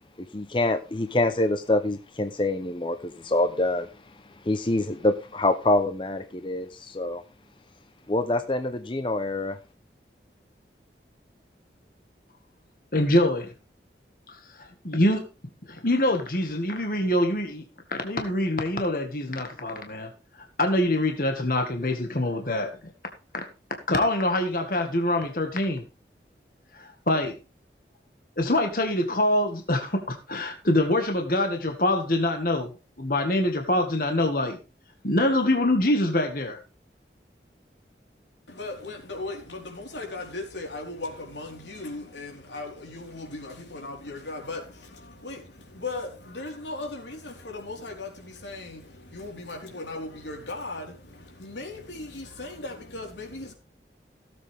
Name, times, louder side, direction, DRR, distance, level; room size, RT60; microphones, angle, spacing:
voice 1, 0.3-3.9 4.4-7.2 8.1-9.6, left 2 dB, 30° left, 0.7 m, -25 dB
voice 2, 12.9-13.5 14.3-15.2 15.7-17.6 17.9-20.1 20.6-22.8 23.3-23.4 23.9-25.8 26.7-27.3 28.4-34.6 35.0-36.6, left 1 dB, 50° left, 1.7 m, -25 dB
voice 3, 38.5-53.5, left 2 dB, 90° left, 4.2 m, -37 dB
16.5 x 7.8 x 3.5 m
head